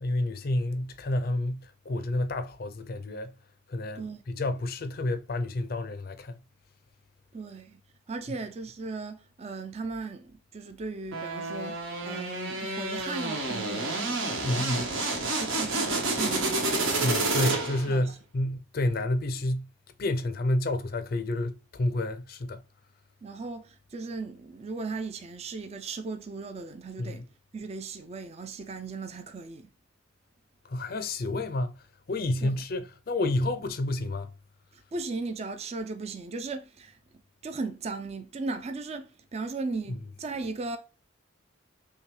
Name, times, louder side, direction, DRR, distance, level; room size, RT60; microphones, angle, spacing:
voice 1, 0.0-3.3 3.7-6.4 14.4-14.9 17.0-19.7 20.0-22.6 27.0-27.2 30.6-31.8 32.1-34.3, left 1 dB, 45° left, 0.4 m, -30 dB
voice 2, 7.3-7.8 8.1-14.3 14.7-14.9 15.2-17.4 17.9-18.1 23.2-27.2 27.5-29.7 32.4-32.6 34.7-37.0 37.4-40.8, right 3 dB, 30° right, 0.4 m, -37 dB
sound 1, 11.1-18.0, right 2 dB, 85° right, 1.2 m, -29 dB
5.5 x 2.2 x 3.1 m
head